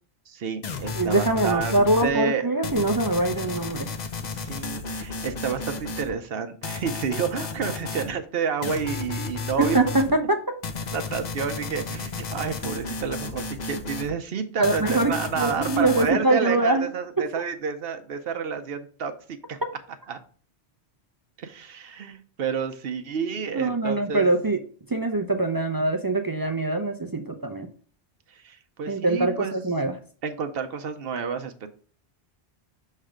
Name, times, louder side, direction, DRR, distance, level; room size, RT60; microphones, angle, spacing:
voice 1, 0.3-2.5 4.3-10.0 10.9-19.6 20.1-20.2 21.4-24.3 28.3-29.5 30.2-31.7, right 6 dB, 65° right, 7 dB, 0.8 m, -30 dB
sound 1, 0.6-2.1 2.6-6.1 6.6-8.1 8.6-10.1 10.6-14.1 14.6-16.1, left 4 dB, 45° left, 0.7 m, -33 dB
voice 2, 0.9-3.9 9.6-10.6 14.6-16.9 17.2-17.3 23.5-24.6 24.9-27.7 28.9-30.0, right 2 dB, 35° right, 5 dB, 0.3 m, -23 dB
6.4 x 3.3 x 4.8 m, 0.44 s
omnidirectional pair, 1.1 m